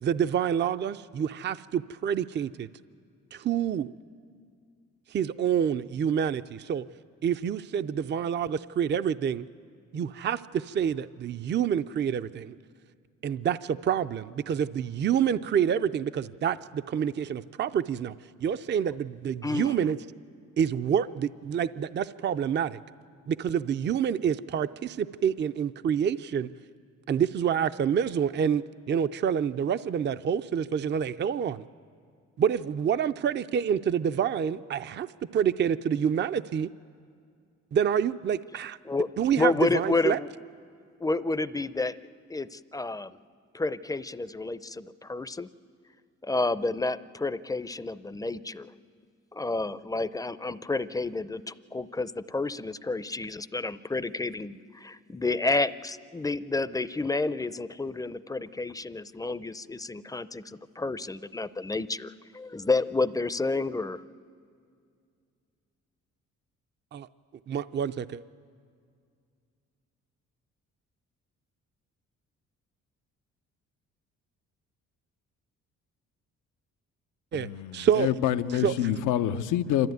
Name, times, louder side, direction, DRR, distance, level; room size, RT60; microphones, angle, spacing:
voice 1, 0.0-2.7 3.3-3.9 5.1-6.8 7.2-9.5 9.9-12.5 13.2-18.1 18.4-20.0 20.6-22.8 23.3-26.5 27.1-31.7 32.4-35.1 35.3-36.7 37.7-38.8 39.2-40.2 66.9-67.1 67.5-68.2 77.3-78.1 78.6-78.7, right 8 dB, 35° right, 12 dB, 0.5 m, -27 dB
voice 2, 19.4-19.9 38.8-39.1 39.4-40.3 41.0-43.2 43.5-45.5 46.2-48.7 49.3-64.0, left 3 dB, 10° left, 15 dB, 0.5 m, -30 dB
voice 3, 77.3-79.9, left 11 dB, 90° left, 11 dB, 0.7 m, -27 dB
26.5 x 13.5 x 9.3 m, 2.3 s
cardioid pair, 90°, 30 cm